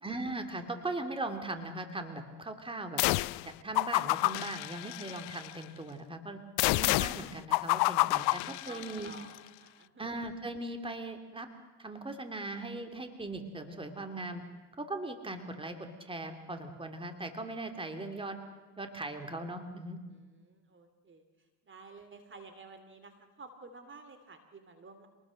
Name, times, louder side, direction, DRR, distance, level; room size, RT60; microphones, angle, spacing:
voice 1, 0.0-3.0 3.4-6.4 6.7-9.1 10.0-11.5 11.8-14.4 14.8-18.4 18.8-20.0, right 2 dB, 15° right, 6 dB, 3.0 m, -39 dB
sound 1, 3.0-3.5 3.8-5.5 6.6-9.2, left 22 dB, 80° left, 0.6 m, -29 dB
voice 2, 8.2-10.1 20.4-21.2 21.7-23.1 23.4-25.1, right 3 dB, 30° right, 8 dB, 2.7 m, -52 dB
27.5 x 20.0 x 6.5 m, 1.3 s
supercardioid pair, 95°, 39 cm